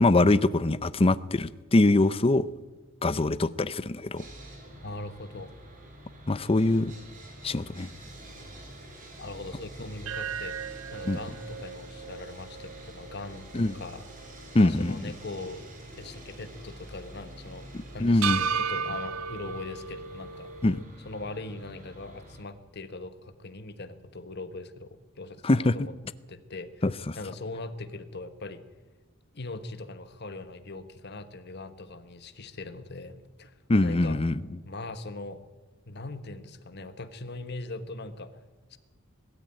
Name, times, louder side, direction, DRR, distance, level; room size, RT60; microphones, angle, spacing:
voice 1, 0.0-2.5 3.0-4.3 6.3-6.9 7.4-7.9 11.1-11.2 13.5-13.7 14.5-15.0 18.0-18.4 20.6-20.8 25.4-25.8 26.8-27.2 33.7-34.4, left 2 dB, 25° left, 0.6 m, -23 dB
Sawing, 4.2-22.4, right 1 dB, 40° right, 3.9 m, -47 dB
voice 2, 4.8-5.5 9.2-10.6 10.9-14.0 14.6-15.6 16.0-17.7 17.9-20.5 21.0-25.9 26.3-26.7 27.1-28.6 29.3-33.5 33.8-34.2 34.6-35.4 35.9-38.4 38.7-38.8, left 2 dB, 50° left, 1.4 m, -40 dB
sound 1, 10.1-14.3 14.7-14.8 18.2-20.8, right 7 dB, 80° right, 0.6 m, -35 dB
21.5 x 13.5 x 9.0 m
head